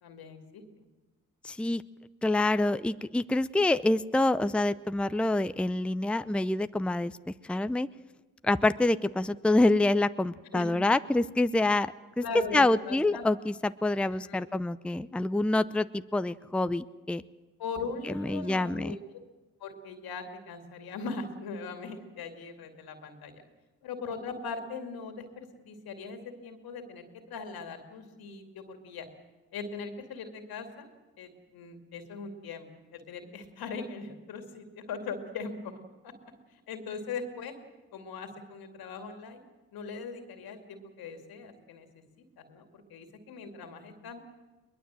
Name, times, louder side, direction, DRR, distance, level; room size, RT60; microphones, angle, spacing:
voice 1, 0.0-0.8 10.5-10.9 12.2-13.2 14.2-14.4 17.6-19.0 19.6-23.4 23.8-29.1 29.5-30.9 31.2-35.8 36.7-37.5 37.9-39.4 39.7-41.9 42.4-44.2, left 4 dB, 80° left, 5 dB, 2.5 m, -40 dB
voice 2, 1.4-1.8 2.2-7.1 7.5-7.9 8.4-12.2 12.5-17.2 18.1-19.0, left 2 dB, 5° left, 13 dB, 0.6 m, -26 dB
22.0 x 20.5 x 7.6 m, 1.2 s
supercardioid pair, 45°, 36 cm